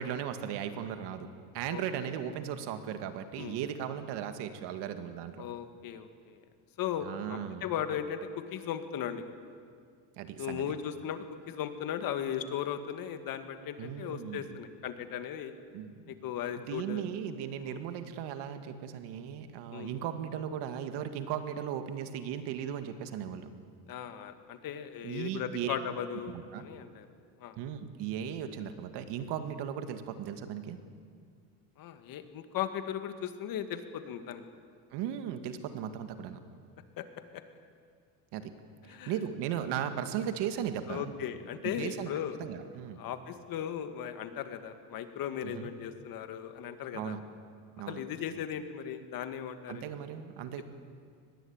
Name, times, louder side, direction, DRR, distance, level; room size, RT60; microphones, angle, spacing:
voice 1, 0.0-5.4 7.0-7.7 10.2-10.6 13.8-14.6 15.7-16.1 16.6-23.5 25.0-25.8 26.3-26.7 27.6-30.8 34.9-36.4 38.3-38.5 38.9-41.1 41.8-42.1 42.4-43.0 45.4-45.7 46.9-47.2 47.8-48.0 49.7-50.6, right 9 dB, 70° right, 8 dB, 2.1 m, -37 dB
voice 2, 5.4-6.4 6.8-9.2 10.4-15.5 16.1-17.0 17.7-17.8 19.7-19.9 23.9-27.1 27.4-27.6 31.8-34.4 37.0-37.1 37.3-37.4 38.9-39.1 40.9-42.4 43.0-47.2 47.9-49.9, left 9 dB, 50° left, 9 dB, 2.0 m, -37 dB
23.5 x 21.0 x 8.9 m, 2.1 s
cardioid pair, 140°, 43 cm